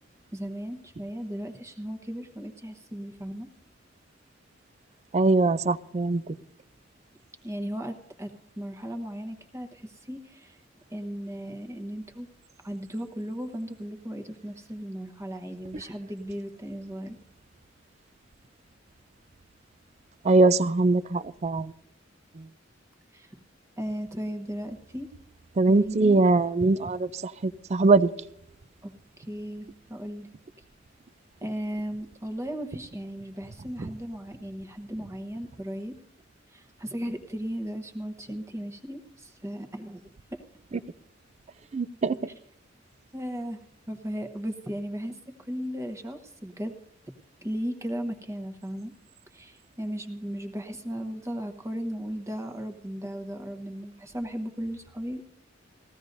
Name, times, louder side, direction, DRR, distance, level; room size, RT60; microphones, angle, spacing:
voice 1, 0.3-3.5 7.4-10.6 10.9-12.3 12.6-17.2 23.1-23.4 23.8-25.1 25.7-26.2 28.8-28.9 29.2-30.3 31.4-36.0 36.5-40.0 43.1-43.6 43.9-46.7 47.4-48.9 49.3-55.2, equal, 15° right, 5 dB, 1.0 m, -36 dB
voice 2, 5.1-6.3 20.2-21.7 22.4-22.5 25.6-28.1 41.7-42.1, right 3 dB, 35° right, 16 dB, 0.4 m, -22 dB
19.0 x 15.0 x 2.6 m, 0.75 s
head